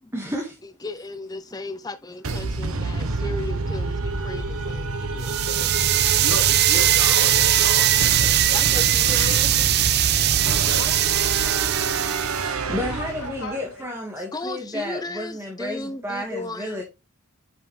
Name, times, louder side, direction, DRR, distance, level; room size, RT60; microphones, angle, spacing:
voice 1, 0.1-0.6 12.7-16.8, left 1 dB, 10° right, 1.7 m, -31 dB
voice 2, 0.6-7.0 8.5-9.7 10.7-11.6 14.2-16.8, left 2 dB, 15° left, 0.5 m, -36 dB
sound 1, 2.2-13.6, right 3 dB, 75° right, 1.1 m, -28 dB
sound 2, 5.2-12.4, right 13 dB, 45° right, 0.5 m, -20 dB
voice 3, 6.2-9.4 10.6-10.9 12.6-13.8, left 2 dB, 85° left, 3.7 m, -34 dB
8.6 x 5.6 x 3.3 m
head